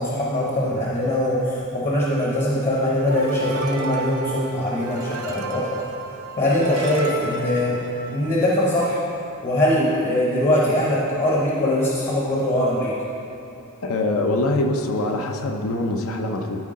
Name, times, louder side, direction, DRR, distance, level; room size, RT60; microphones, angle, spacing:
voice 1, 0.0-5.8 6.4-9.0 9.4-12.9, left 1 dB, 30° left, -4 dB, 0.9 m, -22 dB
sound 1, 3.1-8.6, right 3 dB, 80° right, 0.8 m, -33 dB
voice 2, 13.8-16.6, left 2 dB, 65° left, 4 dB, 0.7 m, -23 dB
13.0 x 4.6 x 3.7 m, 2.9 s
head